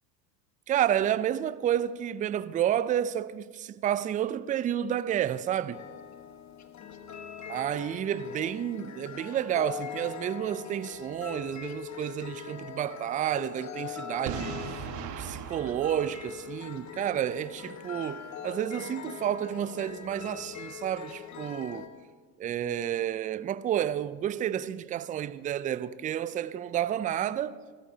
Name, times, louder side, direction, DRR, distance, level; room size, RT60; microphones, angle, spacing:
voice 1, 0.7-5.8 7.5-14.6 15.2-21.9 22.4-27.6, right 10 dB, 20° right, 0.3 m, -30 dB
sound 1, 5.7-21.9, left 9 dB, 35° left, 1.3 m, -42 dB
Boom, 14.3-17.1, right 8 dB, 55° right, 1.6 m, -39 dB
28.5 x 13.5 x 2.8 m
hypercardioid pair, 75°, 50 cm